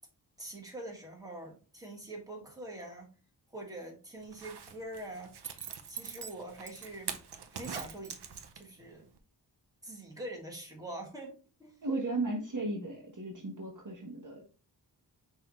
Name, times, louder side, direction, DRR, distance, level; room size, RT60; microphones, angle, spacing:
voice 1, 0.4-3.1 3.5-5.3 5.9-7.2 7.5-8.2 8.5-9.1 9.8-11.7, right 1 dB, 10° right, -1 dB, 1.6 m, -44 dB
Zipper (clothing), 4.2-8.8 9.2-9.3, right 7 dB, 70° right, 0.7 m, -43 dB
voice 2, 11.8-14.5, right 2 dB, 45° right, 0 dB, 1.1 m, -35 dB
5.6 x 2.8 x 3.0 m, 0.36 s
cardioid pair, 65°, 42 cm